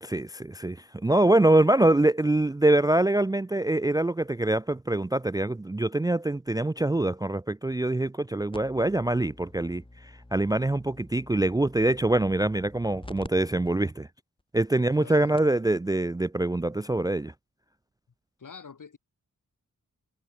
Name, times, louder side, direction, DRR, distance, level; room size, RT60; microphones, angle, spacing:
voice 1, 0.0-9.8 10.3-14.1 14.5-17.3, right 2 dB, 10° right, 0.4 m, -24 dB
sound 1, 8.5-13.3 13.6-13.7 14.4-14.5 15.0-15.1 15.4-15.6 16.9-17.0, left 1 dB, 15° left, 3.8 m, -48 dB
voice 2, 14.8-15.5 18.4-19.0, left 5 dB, 70° left, 7.0 m, -46 dB
wide cardioid pair, 110°, 33 cm